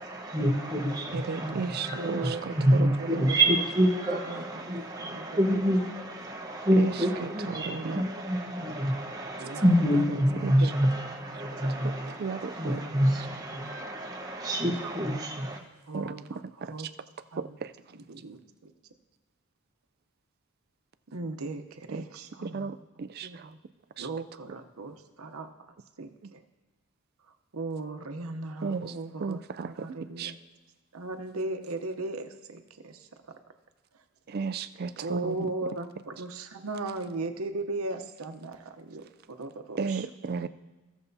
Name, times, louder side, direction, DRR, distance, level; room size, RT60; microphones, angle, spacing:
voice 1, 0.0-15.6, equal, 15° right, -2 dB, 1.1 m, -27 dB
voice 2, 1.1-2.2 2.7-3.3 6.8-6.9 7.6-8.0 10.4-10.6 12.2-12.8 15.9-16.1 16.6-16.7 17.4-17.7 22.4-23.3 24.0-24.1 28.6-28.9 29.2-29.7 30.2-30.3 34.3-35.4 39.8-40.5, right 5 dB, 45° right, 12 dB, 0.3 m, -33 dB
voice 3, 1.9-3.4 4.1-5.6 9.4-9.7 10.6-11.0 11.6-12.4 15.9-16.9 17.3-17.6 17.9-18.7 21.1-22.8 23.2-23.6 24.0-26.4 27.5-30.4 30.9-33.4 33.9-34.0 35.0-40.4, right 2 dB, 80° right, 6 dB, 0.8 m, -38 dB
16.0 x 6.9 x 2.7 m, 1.2 s
head